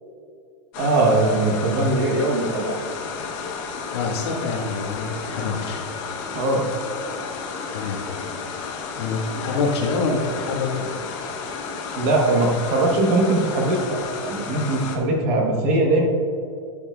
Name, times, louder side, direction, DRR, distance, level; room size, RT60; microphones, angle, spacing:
sound 1, 0.7-15.0, left 5 dB, 25° left, 0.8 m, -32 dB
voice 1, 0.8-2.8 6.3-6.6 12.0-16.1, right 2 dB, 30° right, 1 dB, 1.0 m, -21 dB
voice 2, 3.9-5.9 7.7-8.0 8.9-10.9, left 4 dB, 50° left, -1 dB, 1.5 m, -26 dB
12.0 x 8.6 x 2.3 m, 2.5 s
supercardioid pair, 180°, 17 cm